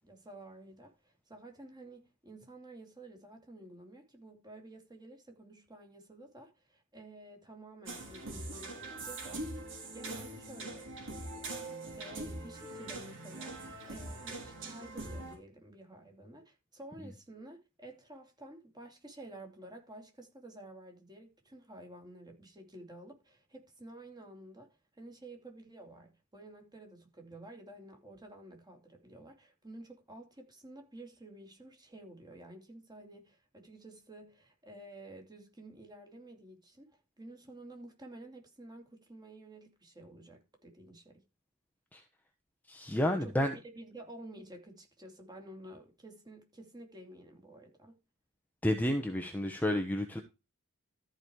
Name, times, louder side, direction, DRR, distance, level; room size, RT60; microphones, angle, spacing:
voice 1, 0.0-9.5 9.8-10.9 11.3-11.6 11.9-41.2 43.1-43.5 43.7-48.0, right 1 dB, 20° right, 3.0 m, -51 dB
sound 1, 7.9-15.3, right 2 dB, 60° right, 4.9 m, -42 dB
voice 2, 42.7-43.5 48.6-50.2, left 1 dB, 10° left, 1.1 m, -30 dB
13.5 x 5.2 x 4.7 m
head